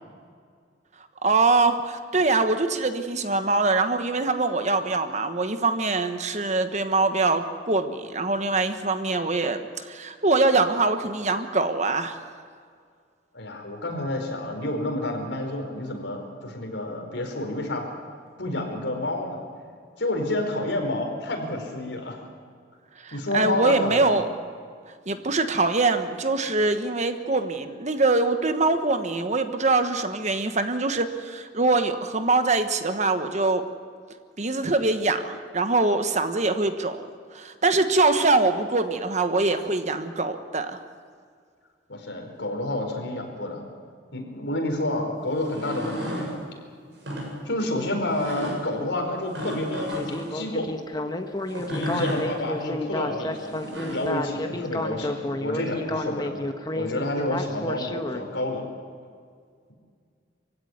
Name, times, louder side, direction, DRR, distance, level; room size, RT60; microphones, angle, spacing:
voice 1, 1.2-12.3 23.0-24.3 25.1-33.6 34.4-37.0 37.3-40.8, right 3 dB, 40° right, 8 dB, 1.2 m, -23 dB
voice 2, 13.3-17.8 18.4-19.4 20.0-22.3 23.1-24.2 41.9-43.7 44.1-46.3 47.4-49.9 50.3-50.7 51.7-53.6 53.9-58.6, left 1 dB, 75° left, 2 dB, 4.8 m, -29 dB
sound 1, 45.4-46.3 46.9-47.3 48.2-48.6 49.3-50.3 51.5-52.2 53.4-54.1, equal, 65° right, 7.6 m, -33 dB
Speech synthesizer, 49.9-58.2, left 1 dB, 20° left, 1.3 m, -31 dB
24.0 x 16.0 x 9.5 m, 2.1 s
head